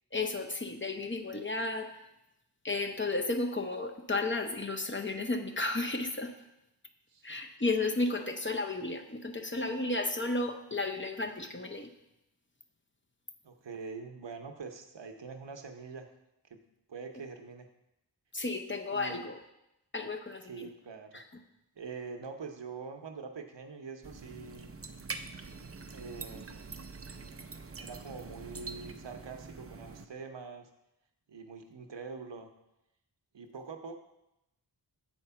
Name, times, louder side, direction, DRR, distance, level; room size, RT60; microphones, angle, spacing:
voice 1, 0.1-1.9 2.6-6.3 7.2-11.9 18.3-19.4 19.9-20.7 21.1-21.2, left 2 dB, 30° left, 4 dB, 0.7 m, -33 dB
voice 2, 13.4-16.1 16.5-16.6 16.9-17.7 18.9-19.3 20.4-21.2 21.8-24.7 25.9-26.8 27.8-30.7 31.3-32.5 33.3-33.9, right 5 dB, 90° right, 5 dB, 0.8 m, -44 dB
sound 1, 24.0-30.0, right 4 dB, 35° right, 0.5 m, -44 dB
7.8 x 4.5 x 5.6 m, 0.88 s
wide cardioid pair, 60°, 42 cm